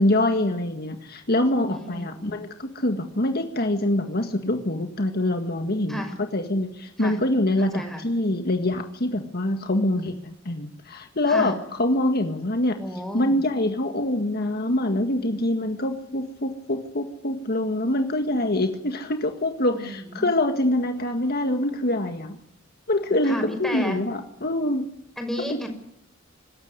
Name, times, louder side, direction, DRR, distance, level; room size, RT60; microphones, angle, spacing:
voice 1, 0.0-6.0 6.3-12.8 13.1-22.4 22.9-24.8 25.5-25.6, left 1 dB, 50° left, 6 dB, 1.9 m, -25 dB
voice 2, 1.7-2.4 5.9-6.2 7.0-7.2 7.6-8.0 11.3-11.5 12.8-13.4 19.7-20.3 23.2-24.0 25.2-25.7, equal, ahead, 3 dB, 6.0 m, -32 dB
25.5 x 14.0 x 9.8 m, 0.75 s
head